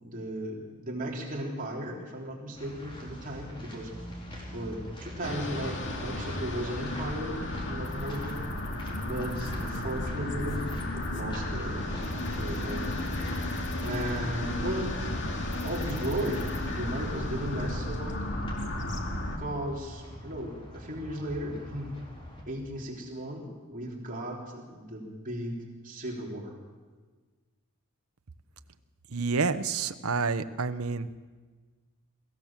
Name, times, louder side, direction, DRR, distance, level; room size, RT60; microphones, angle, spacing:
voice 1, 0.0-3.9 4.5-8.4 9.0-10.6 10.9-11.8 12.3-13.0 13.8-15.1 15.6-18.1 19.4-22.0 22.5-26.6, right 1 dB, 40° right, -2 dB, 3.6 m, -36 dB
sound 1, 2.5-22.4, equal, 25° left, 4.2 m, -44 dB
sound 2, 5.2-19.4, left 1 dB, 55° left, 2.3 m, -33 dB
voice 2, 29.1-31.1, right 4 dB, 75° right, 11 dB, 0.9 m, -29 dB
23.0 x 15.5 x 7.4 m, 1.4 s
head